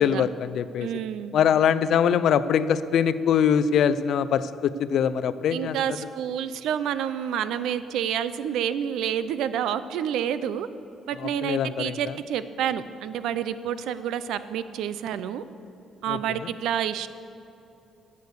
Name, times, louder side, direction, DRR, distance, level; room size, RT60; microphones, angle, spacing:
voice 1, 0.0-0.9 1.3-5.8 11.2-12.1 16.1-16.5, left 8 dB, 65° left, 15 dB, 0.5 m, -23 dB
voice 2, 0.8-1.3 5.5-10.7 11.1-15.4 16.0-17.1, right 9 dB, 85° right, 14 dB, 0.5 m, -29 dB
12.5 x 8.3 x 6.7 m, 2.8 s
cardioid pair, 130°, 0 cm